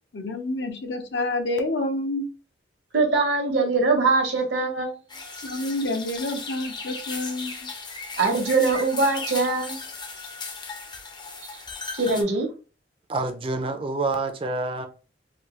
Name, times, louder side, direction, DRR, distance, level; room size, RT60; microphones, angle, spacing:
voice 1, 0.1-2.3 5.4-7.7, left 2 dB, 70° left, 0.6 m, -28 dB
voice 2, 2.9-4.9 8.2-9.8 11.9-12.5, right 3 dB, 70° right, 0.9 m, -22 dB
sound 1, 5.1-12.2, left 4 dB, 25° left, 0.5 m, -36 dB
voice 3, 13.1-14.9, right 3 dB, 30° right, 0.4 m, -27 dB
3.3 x 2.3 x 3.0 m
head